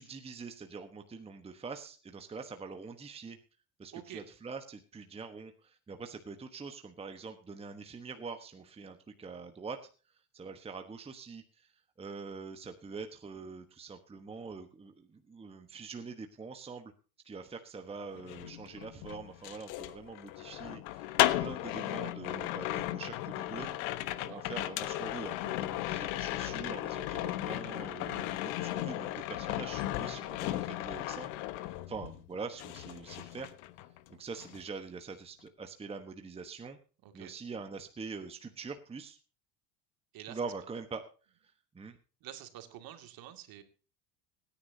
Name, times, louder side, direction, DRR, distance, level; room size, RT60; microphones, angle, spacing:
voice 1, 0.0-3.4 3.8-9.8 10.3-11.7 12.0-16.9 17.2-23.8 24.2-31.3 31.9-33.5 34.2-36.8 37.1-39.2 40.3-41.0 41.4-42.0, right 4 dB, 15° right, 6 dB, 1.2 m, -44 dB
voice 2, 3.9-4.2 24.1-24.4 37.0-37.3 40.1-40.4 42.2-43.6, right 12 dB, 50° right, 7 dB, 2.4 m, -48 dB
sound 1, 18.1-32.3 32.6-34.1 34.3-34.7, left 15 dB, 70° left, 1.2 m, -35 dB
23.5 x 10.0 x 2.8 m, 0.36 s
supercardioid pair, 125°, 44 cm